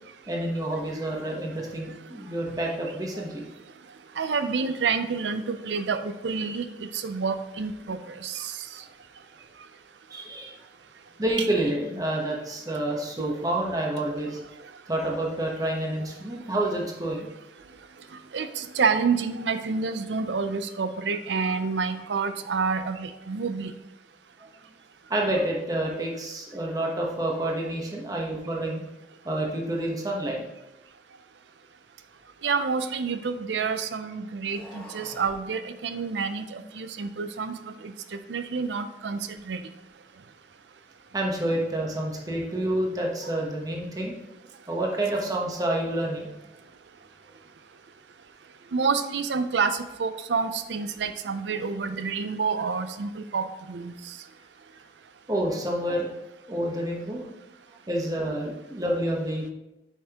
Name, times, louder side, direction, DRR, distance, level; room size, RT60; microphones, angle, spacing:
voice 1, 0.3-3.4 10.1-10.5 11.2-14.4 14.9-17.3 25.1-28.8 29.2-30.4 41.1-44.1 44.7-46.3 55.3-56.1 56.5-57.2 57.9-59.5, right 1 dB, 20° right, -1 dB, 1.1 m, -28 dB
voice 2, 4.2-6.7 6.9-8.5 18.3-23.7 32.4-37.6 37.8-37.9 38.3-39.6 48.7-53.9, right 5 dB, 80° right, 10 dB, 0.5 m, -28 dB
sound 1, 32.1-33.6 34.4-35.4, equal, 5° left, 1.1 m, -48 dB
8.4 x 5.6 x 2.9 m, 0.96 s
head